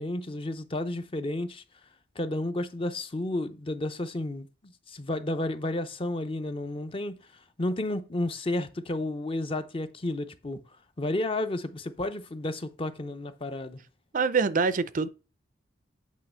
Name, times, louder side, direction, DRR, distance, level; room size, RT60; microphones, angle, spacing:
voice 1, 0.0-1.6 2.2-7.2 7.6-10.6 11.0-13.8, left 1 dB, 30° left, 0.6 m, -32 dB
voice 2, 14.1-15.1, right 5 dB, 45° right, 0.4 m, -25 dB
8.4 x 3.1 x 5.4 m
head